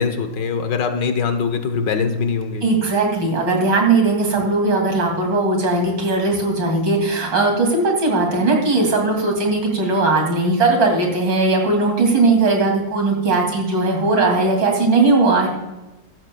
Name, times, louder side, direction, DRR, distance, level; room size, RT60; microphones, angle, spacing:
voice 1, 0.0-2.6, left 5 dB, 70° left, 8 dB, 1.7 m, -22 dB
voice 2, 2.6-15.5, right 3 dB, 70° right, 1 dB, 3.4 m, -18 dB
14.5 x 12.5 x 2.3 m, 1.0 s
omnidirectional pair, 2.0 m